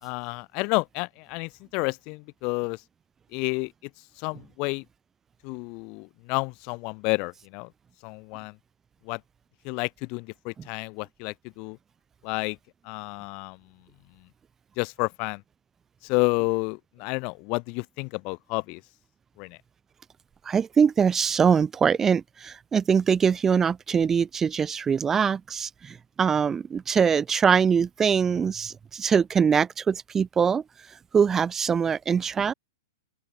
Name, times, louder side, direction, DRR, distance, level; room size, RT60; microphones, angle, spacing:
voice 1, 0.0-2.8 3.3-3.7 4.2-4.8 5.4-7.7 8.0-8.5 9.0-9.2 9.6-11.8 12.2-12.6 12.8-13.6 14.8-15.4 16.0-18.8 19.4-19.6, left 30 dB, 40° left, 2.4 m, -30 dB
voice 2, 20.5-30.6 31.1-32.5, right 6 dB, 20° right, 3.1 m, -23 dB
open air
hypercardioid pair, 115°, 2 cm